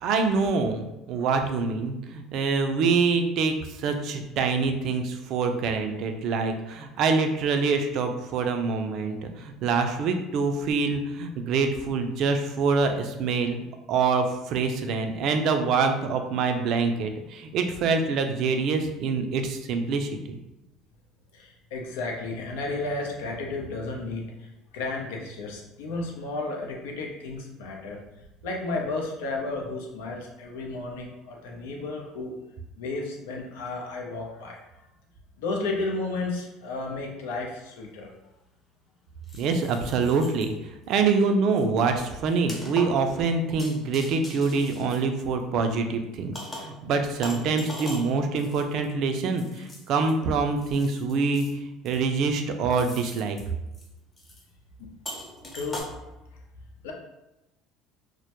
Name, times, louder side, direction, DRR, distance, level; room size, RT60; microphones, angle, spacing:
voice 1, 0.0-13.6 13.9-20.4 39.4-53.4, right 4 dB, 60° right, 5 dB, 0.3 m, -25 dB
voice 2, 21.3-32.3 32.8-34.6 35.4-38.1 54.8-54.9 55.5-55.8 56.8-56.9, left 3 dB, 85° left, 0 dB, 0.5 m, -33 dB
sound 1, 37.7-37.8 39.2-40.5 40.9-41.1 41.5-45.7 46.4-46.8 47.2-50.1 50.6-51.5 51.9-52.3 52.7-53.5 53.7-53.9 54.2-54.4 55.1-55.8, left 1 dB, 20° left, 0.7 m, -42 dB
2.1 x 2.1 x 2.8 m, 0.96 s
supercardioid pair, 100°, 0 cm